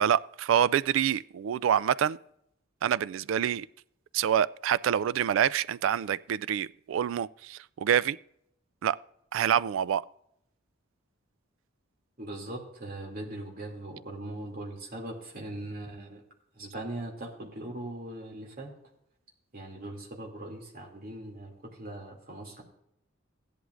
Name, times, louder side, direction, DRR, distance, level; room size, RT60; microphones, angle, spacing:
voice 1, 0.0-2.2 2.8-3.7 4.1-8.2 8.8-9.0 9.3-10.0, right 9 dB, 70° right, 0.3 m, -26 dB
voice 2, 12.2-16.2 16.5-18.7 19.5-22.6, right 1 dB, 45° right, 2.6 m, -40 dB
15.5 x 11.0 x 2.5 m
head